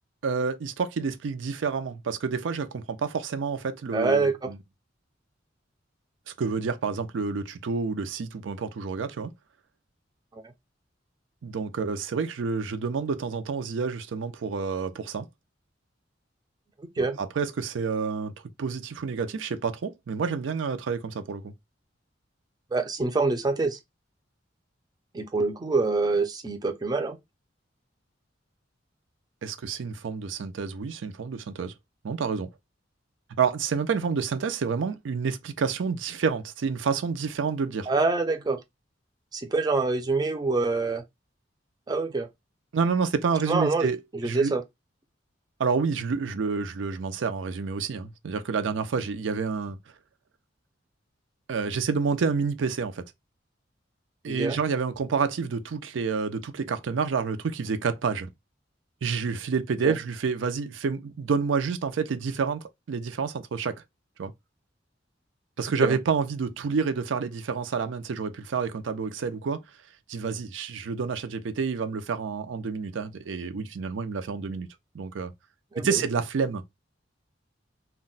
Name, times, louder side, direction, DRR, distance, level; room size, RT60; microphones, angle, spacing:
voice 1, 0.2-4.6 6.3-9.3 11.4-15.3 17.0-18.3 18.6-21.5 29.4-31.7 32.0-32.5 33.4-37.9 42.7-44.5 45.6-49.8 51.5-53.0 54.2-58.3 59.0-63.8 64.2-64.3 65.6-69.6 70.1-74.7 74.9-75.3 75.8-76.6, right 5 dB, 90° right, 0.4 m, -29 dB
voice 2, 3.9-4.5 10.3-10.4 17.0-17.2 22.7-23.8 25.1-27.2 37.9-38.6 39.3-41.0 41.9-42.3 43.5-44.6 54.3-54.6 59.8-59.9 65.8-65.9 75.7-76.0, right 3 dB, 20° right, 0.4 m, -25 dB
2.2 x 2.1 x 3.8 m
head